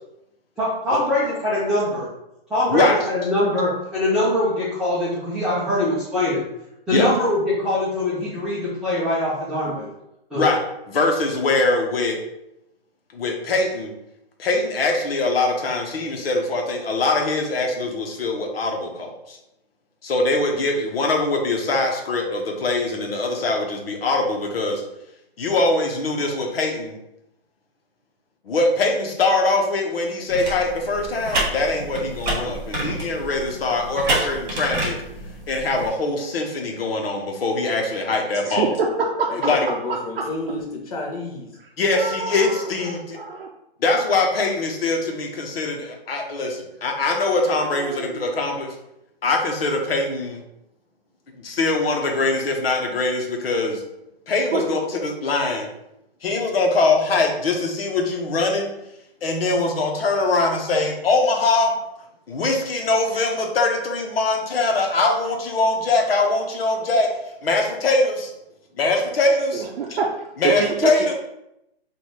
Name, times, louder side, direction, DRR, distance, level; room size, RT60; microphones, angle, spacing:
voice 1, 0.6-2.1 2.5-6.4 6.9-9.9 10.3-10.4, left 1 dB, ahead, -14 dB, 0.6 m, -22 dB
voice 2, 10.9-12.2 13.1-13.9 14.4-19.4 20.0-24.8 25.4-27.0 28.4-34.9 35.5-38.7 39.4-39.7 41.8-43.2 43.8-48.7 49.2-50.4 51.4-53.8 54.3-55.7 56.2-58.7 59.2-61.7 62.3-67.1 67.4-68.3 68.7-69.6 69.9-70.0 70.4-71.1, left 3 dB, 70° left, 2 dB, 1.1 m, -22 dB
sound 1, 30.3-35.9, right 1 dB, 25° right, 1.5 m, -28 dB
voice 3, 38.4-39.5 39.9-40.2 41.9-43.5 47.4-48.2 54.5-54.6 69.5-70.1 70.4-71.1, right 4 dB, 65° right, 0 dB, 0.6 m, -26 dB
voice 4, 39.4-41.5, left 2 dB, 35° left, 0 dB, 0.9 m, -30 dB
4.0 x 2.6 x 3.1 m, 0.84 s
hypercardioid pair, 155°, 31 cm